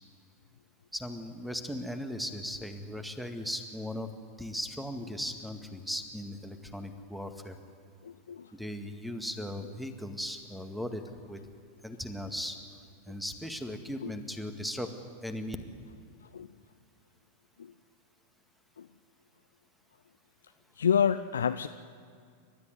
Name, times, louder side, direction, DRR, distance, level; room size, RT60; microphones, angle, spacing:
voice 1, 0.9-4.1 4.4-7.6 8.5-11.4 11.8-12.6 13.1-14.9 15.2-15.6, equal, ahead, 7 dB, 1.9 m, -37 dB
voice 2, 8.0-8.5 14.0-14.1 16.3-16.5 17.6-17.7 18.8-18.9 20.8-21.7, left 7 dB, 70° left, 9 dB, 0.6 m, -28 dB
29.0 x 13.0 x 9.7 m, 2.3 s
figure-of-eight pair, 90°, 0 cm